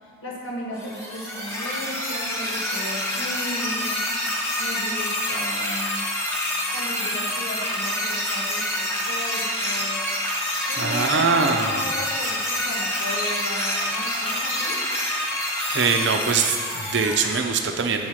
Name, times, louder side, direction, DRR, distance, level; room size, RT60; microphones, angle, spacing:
voice 1, 0.0-4.1 4.6-6.0 6.7-10.1 10.7-14.8, left 1 dB, 90° left, -3 dB, 1.6 m, -35 dB
sound 1, 0.8-17.4, left 1 dB, 15° left, 0.9 m, -27 dB
voice 2, 10.8-11.8 15.7-18.1, right 5 dB, 60° right, 5 dB, 0.6 m, -23 dB
7.0 x 4.8 x 5.7 m, 2.1 s
head